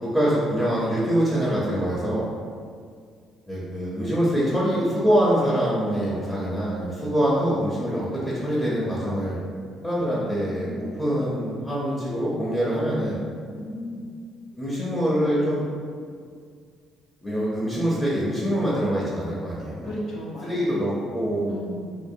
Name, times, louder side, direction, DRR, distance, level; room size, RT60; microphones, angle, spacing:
voice 1, 0.0-2.3 3.5-9.4 9.8-13.2 14.5-15.6 17.2-19.9 20.4-21.5, equal, 10° left, -8 dB, 0.6 m, -24 dB
voice 2, 10.3-11.0 13.6-14.1 19.8-20.7 21.5-22.0, equal, 65° left, -4 dB, 0.6 m, -35 dB
2.5 x 2.0 x 2.6 m, 2.1 s
supercardioid pair, 85°, 0 cm